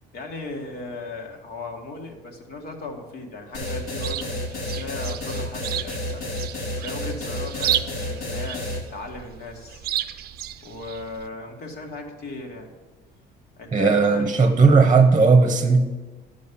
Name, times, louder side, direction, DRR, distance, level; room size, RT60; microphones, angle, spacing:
voice 1, 0.1-9.9 10.6-12.7 13.6-15.2, left 3 dB, 60° left, 2 dB, 1.9 m, -36 dB
sound 1, 3.5-8.8, left 1 dB, 80° left, 2.4 m, -30 dB
Chirp tweet, 3.7-11.3, right 12 dB, 60° right, 0.5 m, -33 dB
voice 2, 13.7-15.8, right 4 dB, 20° right, 7 dB, 0.9 m, -16 dB
11.5 x 5.3 x 7.0 m, 1.2 s
cardioid pair, 110°, 18 cm